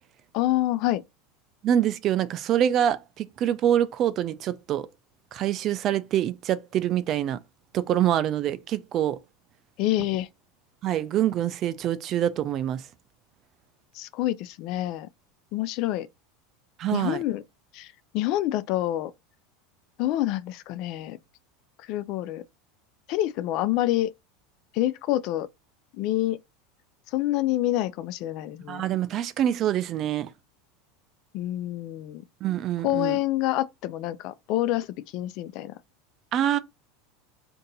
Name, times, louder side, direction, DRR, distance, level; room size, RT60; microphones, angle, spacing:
voice 1, 0.3-1.0 9.8-10.3 13.9-15.1 15.5-16.1 16.9-17.4 17.7-19.1 20.0-21.2 21.9-22.4 23.1-24.1 24.7-25.5 26.0-26.4 27.1-28.8 31.3-32.2 32.8-34.9 35.1-35.7, left 15 dB, 55° left, 0.3 m, -27 dB
voice 2, 1.6-4.9 5.3-7.4 7.7-9.2 10.8-12.8 16.8-17.2 28.7-30.3 32.4-33.2 36.3-36.6, right 11 dB, 40° right, 0.4 m, -25 dB
2.6 x 2.6 x 3.8 m
supercardioid pair, 125°, 0 cm